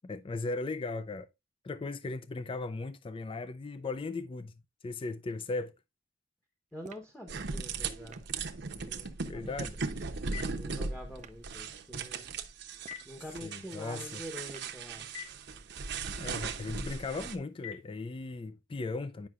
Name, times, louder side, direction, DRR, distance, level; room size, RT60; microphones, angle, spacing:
voice 1, 0.1-1.3 1.6-4.5 4.8-5.7 9.2-9.8 13.4-14.2 16.2-19.3, left 3 dB, 30° left, 0.4 m, -37 dB
voice 2, 6.7-8.2 8.7-12.3 13.0-15.3, equal, 5° left, 0.9 m, -47 dB
sound 1, 6.8-7.2 8.1-8.4 9.6-9.8 11.2-11.4 12.8-13.2 14.5-14.8, right 6 dB, 40° right, 0.4 m, -52 dB
sound 2, 7.3-17.3, right 4 dB, 65° right, 0.8 m, -38 dB
Telephone, 9.6-18.5, left 10 dB, 75° left, 1.9 m, -52 dB
9.5 x 5.5 x 2.4 m
head